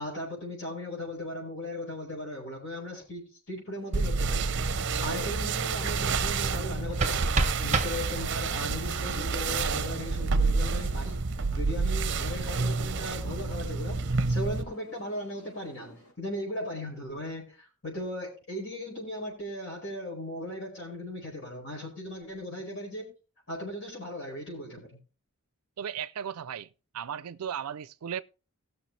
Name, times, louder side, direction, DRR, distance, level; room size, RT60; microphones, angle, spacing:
voice 1, 0.0-4.5 5.0-14.0 14.3-23.1 23.5-25.0, left 1 dB, 55° left, 4.8 m, -37 dB
sound 1, 3.8-16.1, equal, 80° left, 4.5 m, -52 dB
sound 2, 3.9-14.6, right 4 dB, 55° right, 0.7 m, -29 dB
sound 3, 6.6-8.6, right 3 dB, 30° right, 1.2 m, -30 dB
voice 2, 25.8-26.7 26.9-28.2, right 8 dB, 85° right, 0.4 m, -35 dB
18.5 x 6.5 x 3.2 m
head